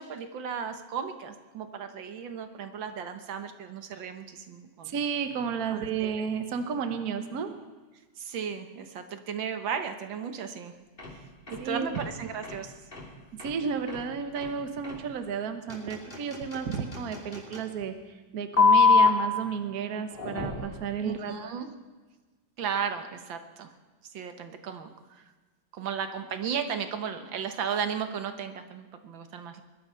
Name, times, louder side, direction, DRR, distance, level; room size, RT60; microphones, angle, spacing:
voice 1, 0.0-4.9 5.7-6.1 8.2-10.7 11.5-12.7 21.0-21.7 22.6-23.7 24.1-25.2 25.7-29.6, right 7 dB, 70° right, 8 dB, 1.8 m, -35 dB
voice 2, 4.8-7.5 11.6-12.0 13.3-21.3, right 6 dB, 55° right, 8 dB, 1.4 m, -32 dB
sound 1, 11.0-11.1 11.5-11.6 11.9-12.1 12.4-12.6 12.9-13.1 13.4-13.5 13.9-14.0 14.4-14.5 14.8-15.0 15.7-17.6 18.6-19.1 20.1-20.8, left 5 dB, 25° left, 3.2 m, -24 dB
21.0 x 11.5 x 5.7 m, 1.3 s
omnidirectional pair, 2.2 m